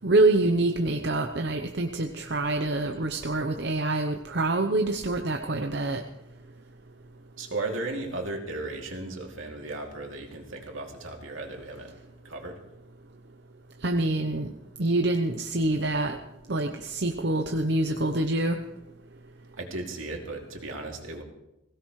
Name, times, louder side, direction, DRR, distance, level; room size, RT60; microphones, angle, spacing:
voice 1, 0.0-6.0 13.8-14.5 14.8-16.2 16.5-18.6, right 2 dB, 55° right, 4 dB, 0.8 m, -26 dB
voice 2, 7.4-11.9 12.2-12.6 19.6-21.2, right 2 dB, 80° right, 1 dB, 2.7 m, -35 dB
21.0 x 17.0 x 3.2 m, 0.91 s
head